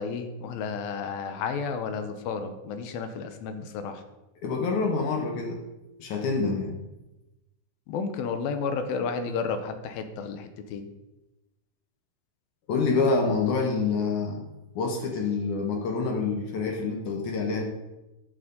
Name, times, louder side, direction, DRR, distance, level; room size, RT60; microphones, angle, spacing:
voice 1, 0.0-4.0 7.9-10.9, left 5 dB, 85° left, 8 dB, 2.7 m, -32 dB
voice 2, 4.4-5.6 6.0-6.8 12.7-14.4 14.8-17.6, left 4 dB, 65° left, 3 dB, 2.3 m, -27 dB
12.5 x 8.2 x 4.0 m, 1.0 s
omnidirectional pair, 4.2 m